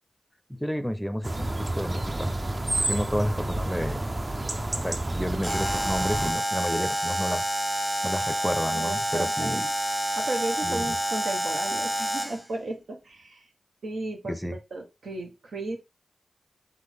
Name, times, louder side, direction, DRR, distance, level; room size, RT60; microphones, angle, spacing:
voice 1, 0.5-2.3 2.8-4.0 4.7-7.4 8.0-9.7 10.6-11.0 14.2-14.6, equal, 5° left, 0.6 m, -31 dB
sound 1, 1.2-6.3, right 2 dB, 40° right, 0.6 m, -30 dB
Alarm, 5.4-12.5, right 1 dB, 15° right, 0.9 m, -28 dB
voice 2, 8.7-9.6 10.2-13.5 13.8-14.4 14.7-15.8, right 2 dB, 85° right, 1.0 m, -34 dB
3.8 x 3.7 x 3.4 m
cardioid pair, 40°, 0 cm